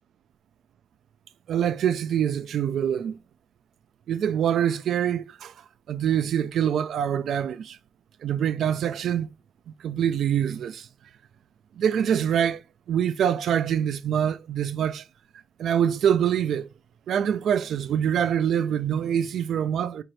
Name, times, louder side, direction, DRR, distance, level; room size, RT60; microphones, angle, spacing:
voice 1, 1.5-3.2 4.1-5.5 5.9-7.8 8.2-9.3 9.8-10.9 11.8-12.6 12.9-15.0 15.6-16.7 17.1-20.0, right 9 dB, 80° right, 0.3 m, -25 dB
4.5 x 3.8 x 3.1 m
cardioid pair, 100°, 0 cm